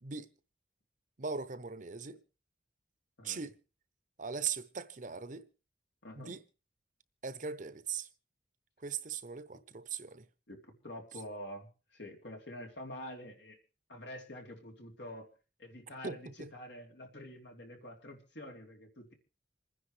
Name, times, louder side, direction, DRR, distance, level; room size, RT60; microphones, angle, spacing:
voice 1, 0.0-0.3 1.2-2.2 3.2-3.6 4.2-5.4 6.1-6.4 7.2-8.1 8.8-10.2 16.0-16.5, right 6 dB, 45° right, 0.8 m, -39 dB
voice 2, 6.0-6.3 10.5-13.6 13.9-15.3 15.6-19.1, left 1 dB, 80° left, 3.3 m, -47 dB
27.5 x 10.0 x 3.3 m
head